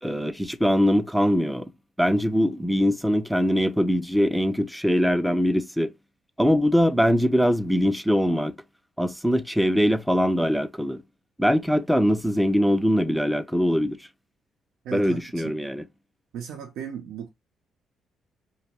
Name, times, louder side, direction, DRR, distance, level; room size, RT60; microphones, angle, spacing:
voice 1, 0.0-1.7 2.0-5.9 6.4-8.5 9.0-11.0 11.4-14.0 14.9-15.8, equal, ahead, 0.3 m, -22 dB
voice 2, 14.8-15.6 16.3-17.3, right 8 dB, 85° right, 0.4 m, -36 dB
2.5 x 2.1 x 2.8 m
cardioid pair, 90°, 0 cm